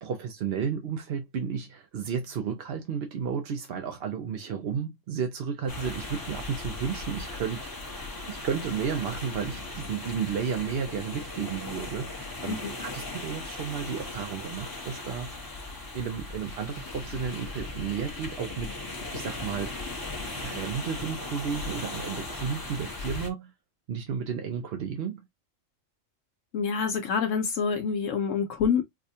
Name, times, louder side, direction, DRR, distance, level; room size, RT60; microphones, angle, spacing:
voice 1, 0.0-7.7 8.3-15.3 15.9-19.7 20.3-23.5 23.9-25.2, right 7 dB, 60° right, 0.7 m, -33 dB
sound 1, 5.7-23.3, left 2 dB, 20° left, 0.9 m, -38 dB
voice 2, 26.5-28.8, left 6 dB, 75° left, 1.1 m, -27 dB
4.7 x 2.3 x 2.7 m
omnidirectional pair, 1.4 m